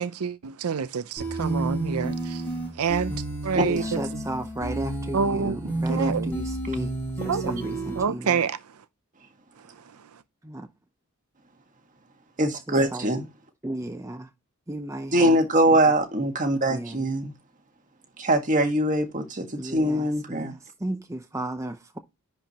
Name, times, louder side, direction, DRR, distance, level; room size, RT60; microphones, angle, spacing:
voice 1, 0.0-2.4 2.8-3.1 3.4-3.8 4.1-4.2 5.1-5.6 5.9-6.3 7.3-7.5 8.0-8.6, right 6 dB, 85° right, 0.5 m, -27 dB
sound 1, 1.2-8.0, right 2 dB, 10° left, 4.4 m, -31 dB
voice 2, 3.7-7.0 7.2-8.4 10.4-10.7 12.7-13.1 13.6-14.3 14.7-15.4 15.7-15.8 16.7-17.0 19.6-22.0, right 1 dB, 15° right, 0.6 m, -34 dB
voice 3, 12.4-13.2 15.1-17.3 18.2-20.5, right 1 dB, 35° right, 1.7 m, -22 dB
10.5 x 4.6 x 2.9 m
head